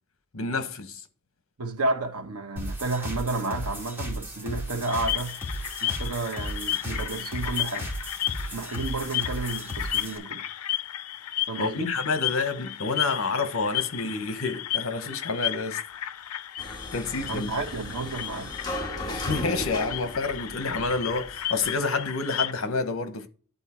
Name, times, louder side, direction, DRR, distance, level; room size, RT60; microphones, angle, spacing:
voice 1, 0.3-1.0 11.6-15.8 16.9-17.5 19.1-23.3, left 3 dB, 65° left, 1.1 m, -28 dB
voice 2, 1.6-5.4 5.8-7.9 8.5-10.4 11.5-11.9 17.3-18.5, right 3 dB, 85° right, 1.1 m, -31 dB
sound 1, 2.6-10.2, equal, 10° right, 2.2 m, -35 dB
sound 2, 4.9-22.5, left 12 dB, 85° left, 0.5 m, -33 dB
sound 3, 16.6-21.8, left 1 dB, 20° left, 1.5 m, -36 dB
10.5 x 4.3 x 4.4 m
head